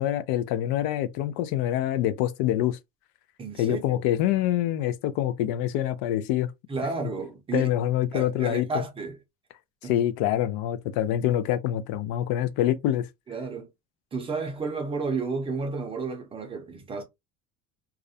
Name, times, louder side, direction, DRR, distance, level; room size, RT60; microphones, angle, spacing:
voice 1, 0.0-2.8 3.6-6.5 7.5-8.7 9.8-13.1, left 12 dB, 85° left, 0.5 m, -25 dB
voice 2, 3.4-4.0 6.7-7.7 8.1-9.2 9.8-9.9 13.3-13.7 14.1-17.0, right 4 dB, 15° right, 0.4 m, -32 dB
2.4 x 2.0 x 2.6 m
cardioid pair, 180°, 34 cm